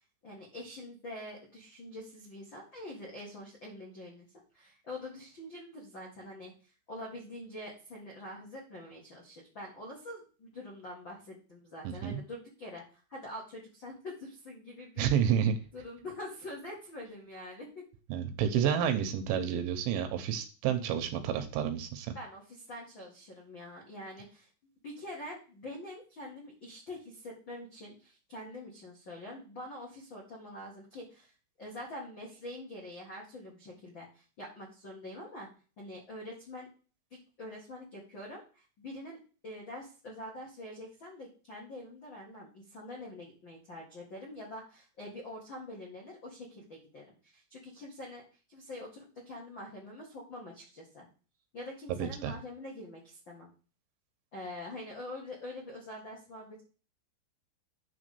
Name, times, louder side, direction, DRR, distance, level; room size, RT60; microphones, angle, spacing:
voice 1, 0.2-4.3 4.5-6.5 6.9-15.1 15.7-17.8 22.1-24.5 24.8-31.3 31.6-35.5 35.8-36.7 37.4-39.2 39.4-48.2 48.5-51.1 51.5-53.5 54.3-56.6, left 1 dB, 75° left, -4 dB, 1.0 m, -45 dB
voice 2, 11.8-12.2 15.0-15.6 18.1-22.1 52.0-52.3, right 8 dB, 80° right, 7 dB, 3.0 m, -30 dB
9.8 x 3.5 x 6.8 m, 0.37 s
omnidirectional pair, 5.9 m